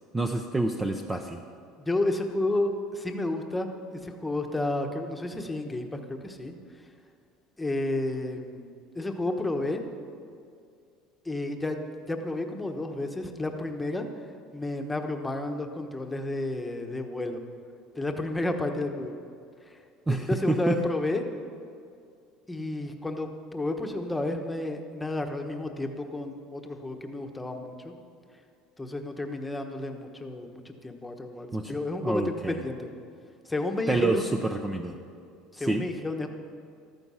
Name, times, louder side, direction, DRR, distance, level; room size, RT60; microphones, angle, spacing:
voice 1, 0.1-1.4 20.1-20.8 31.5-31.7 32.0-32.6 33.9-35.0 35.6-35.9, right 2 dB, 10° right, 4 dB, 0.7 m, -27 dB
voice 2, 1.8-6.5 7.6-9.8 11.2-14.0 14.5-17.4 17.9-19.2 19.7-19.8 20.1-21.2 22.5-27.9 28.8-32.9 33.5-34.2 35.5-36.3, left 2 dB, 10° left, 4 dB, 1.2 m, -31 dB
14.5 x 13.0 x 5.7 m, 2.4 s
cardioid pair, 145°, 0 cm